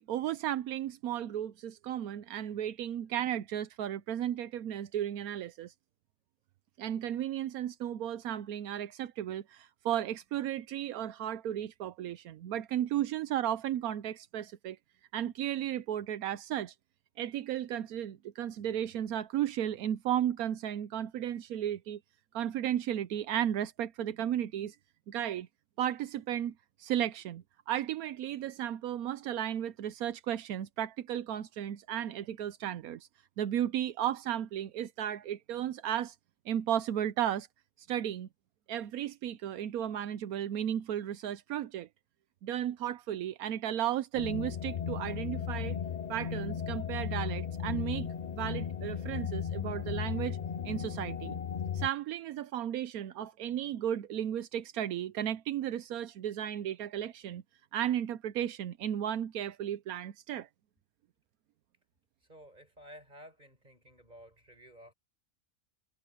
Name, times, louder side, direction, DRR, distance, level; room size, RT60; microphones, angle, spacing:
voice 1, 0.0-5.7 6.8-14.8 15.1-16.7 17.2-22.0 22.3-24.8 25.1-25.5 25.8-26.5 26.8-33.1 33.4-36.1 36.5-37.5 37.8-38.3 38.7-41.9 42.4-45.8 46.1-48.1 48.3-50.4 50.6-51.4 51.7-57.4 57.7-60.5, right 11 dB, 85° right, 1.2 m, -34 dB
sound 1, 44.1-51.9, left 7 dB, 60° left, 0.4 m, -36 dB
voice 2, 62.3-64.9, equal, 30° right, 5.8 m, -53 dB
omnidirectional pair, 1.5 m